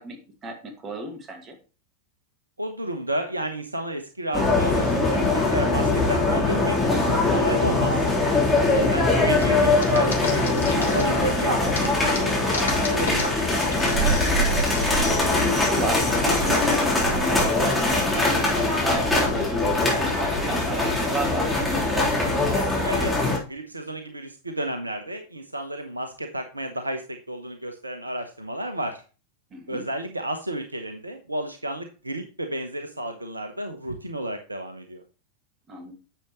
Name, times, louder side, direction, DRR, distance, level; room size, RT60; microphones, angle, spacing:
voice 1, 0.0-1.6 8.7-9.2 14.2-14.5 15.4-21.6 29.5-29.8 35.7-35.9, right 1 dB, 25° right, 4 dB, 2.0 m, -33 dB
voice 2, 2.6-6.8 7.0-8.0 8.7-13.3 22.5-29.0 29.7-35.0, right 1 dB, 80° right, 6 dB, 1.0 m, -32 dB
sound 1, 4.3-23.4, left 2 dB, 5° left, 3.6 m, -22 dB
sound 2, 9.4-11.3 11.6-14.8, left 4 dB, 65° left, 2.2 m, -32 dB
10.0 x 7.1 x 3.1 m, 0.34 s
figure-of-eight pair, 90°, 0 cm